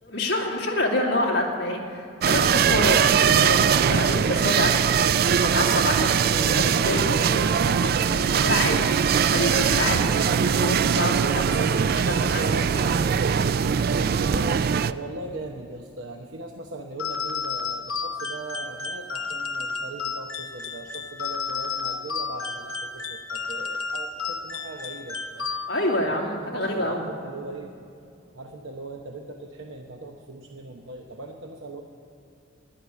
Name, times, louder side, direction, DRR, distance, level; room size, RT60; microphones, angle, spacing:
voice 1, 0.0-4.8 5.3-8.8 9.2-12.9 25.7-27.0, left 1 dB, 55° left, -2 dB, 2.3 m, -27 dB
sound 1, 2.2-14.9, right 7 dB, 50° right, 0.3 m, -21 dB
voice 2, 14.3-25.5 26.5-27.7 28.3-31.8, right 2 dB, 75° right, 2 dB, 0.9 m, -39 dB
sound 2, 17.0-26.0, left 5 dB, 90° left, 0.9 m, -32 dB
13.0 x 10.5 x 9.5 m, 2.4 s
head